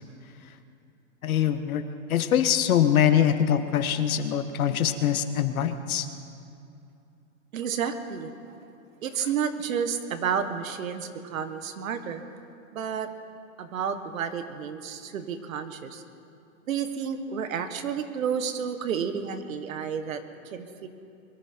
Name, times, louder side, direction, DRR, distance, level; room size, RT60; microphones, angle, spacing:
voice 1, 1.2-1.8 2.1-6.1, left 9 dB, 90° left, 10 dB, 1.3 m, -23 dB
voice 2, 7.5-8.3 9.0-12.2 12.7-13.1 13.6-16.0 16.7-20.9, right 7 dB, 75° right, 9 dB, 1.5 m, -31 dB
22.5 x 14.0 x 4.5 m, 2.7 s
supercardioid pair, 170°, 41 cm